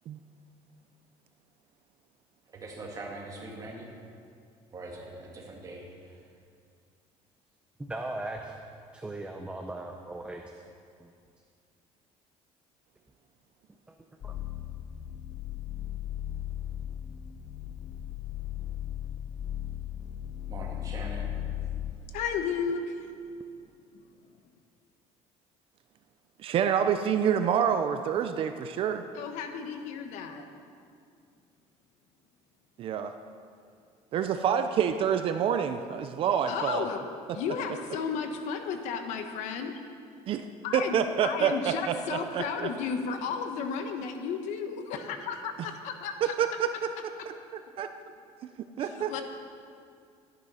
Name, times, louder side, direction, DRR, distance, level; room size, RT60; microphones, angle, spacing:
voice 1, 2.5-3.9 4.7-6.2 20.5-21.3, right 2 dB, 30° right, -1 dB, 2.4 m, -42 dB
voice 2, 7.8-8.6 8.9-10.6 11.0-11.1 13.9-14.0 14.2-14.3, right 2 dB, 10° right, 3 dB, 0.7 m, -38 dB
sound 1, 14.2-21.9, left 12 dB, 35° left, 0.4 m, -36 dB
voice 3, 22.0-23.1 29.1-30.5 36.5-37.0 37.3-39.8 40.6-46.3 48.8-49.2, left 6 dB, 75° left, 6 dB, 1.2 m, -33 dB
voice 4, 26.4-29.0 32.8-33.1 34.1-36.9 40.3-40.4 40.7-42.7 46.2-46.7 47.3-47.9 48.8-49.2, right 8 dB, 50° right, 8 dB, 0.6 m, -27 dB
12.5 x 10.5 x 5.6 m, 2.3 s
cardioid pair, 150°, 12 cm